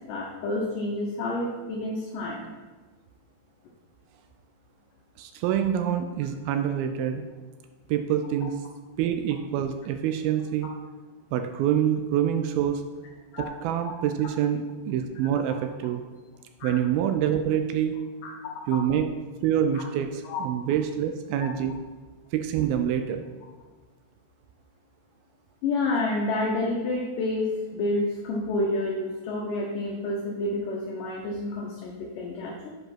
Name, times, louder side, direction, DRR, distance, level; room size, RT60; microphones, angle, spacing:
voice 1, 0.1-2.5 13.3-13.5 13.9-14.0 16.6-16.7 18.2-18.5 19.7-19.8 20.2-20.4 21.4-21.5 25.6-32.7, left 2 dB, 70° left, -1 dB, 2.1 m, -29 dB
voice 2, 5.2-7.2 7.9-8.6 9.0-10.7 11.3-12.8 13.4-16.0 16.6-18.0 18.7-19.1 19.4-21.8 22.3-23.2, right 9 dB, 85° right, 7 dB, 2.2 m, -26 dB
7.8 x 4.9 x 5.8 m, 1.3 s
omnidirectional pair, 4.7 m